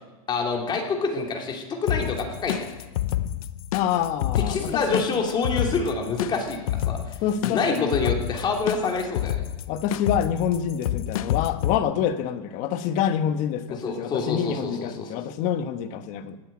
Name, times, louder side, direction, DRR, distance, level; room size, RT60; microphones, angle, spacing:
voice 1, 0.3-2.7 4.5-7.2 7.4-9.4 13.8-15.1, left 4 dB, 25° left, 2 dB, 2.9 m, -27 dB
sound 1, 1.9-11.8, left 12 dB, 70° left, 0.8 m, -29 dB
voice 2, 3.7-5.1 7.2-8.1 9.7-16.4, left 9 dB, 45° left, 10 dB, 1.3 m, -27 dB
17.0 x 9.6 x 8.7 m, 1.2 s
supercardioid pair, 140°, 19 cm